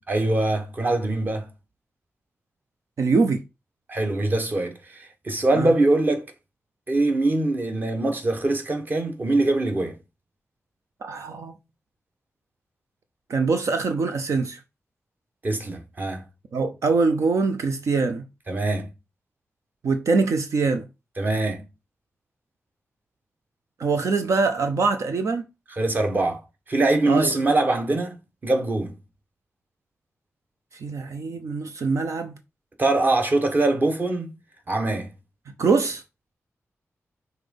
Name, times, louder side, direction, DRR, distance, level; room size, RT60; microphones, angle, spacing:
voice 1, 0.1-1.5 3.9-6.3 6.9-10.0 15.4-16.2 18.5-18.9 21.2-21.7 25.8-28.2 28.4-29.0 32.8-34.3 34.7-35.1, right 2 dB, 40° right, 1.4 m, -23 dB
voice 2, 3.0-3.4 5.6-5.7 11.0-11.6 13.3-14.6 16.5-18.2 19.8-20.9 23.8-25.4 27.1-27.3 30.8-32.3 35.6-36.0, right 4 dB, 80° right, 0.8 m, -23 dB
5.9 x 4.0 x 5.4 m
wide cardioid pair, 130°, 5 cm